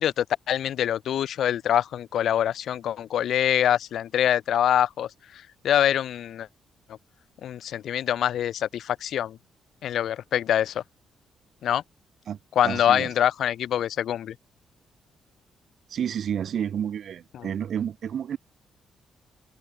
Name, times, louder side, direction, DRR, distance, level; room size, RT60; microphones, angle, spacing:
voice 1, 0.0-6.5 7.4-9.4 9.8-10.8 11.6-11.8 12.6-14.3 17.3-17.5, left 10 dB, 55° left, 0.6 m, -25 dB
voice 2, 12.6-13.1 15.9-18.4, right 8 dB, 45° right, 1.1 m, -30 dB
cardioid pair, 175°, 0 cm